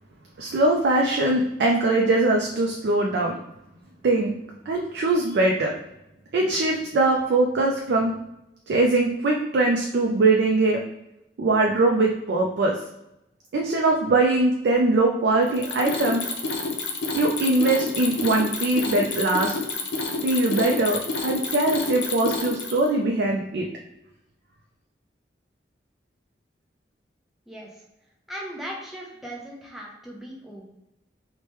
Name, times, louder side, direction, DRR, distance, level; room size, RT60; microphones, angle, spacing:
voice 1, 0.4-3.4 4.0-4.3 4.7-5.7 6.3-8.1 8.7-10.8 11.4-12.8 13.5-16.2 17.1-19.5 20.2-23.6, right 2 dB, 70° right, 0 dB, 0.3 m, -22 dB
Mechanisms, 15.5-22.9, left 3 dB, 75° left, 0.5 m, -29 dB
voice 2, 27.5-27.9 28.3-30.7, equal, ahead, -3 dB, 0.6 m, -38 dB
3.1 x 2.1 x 3.0 m, 0.87 s
head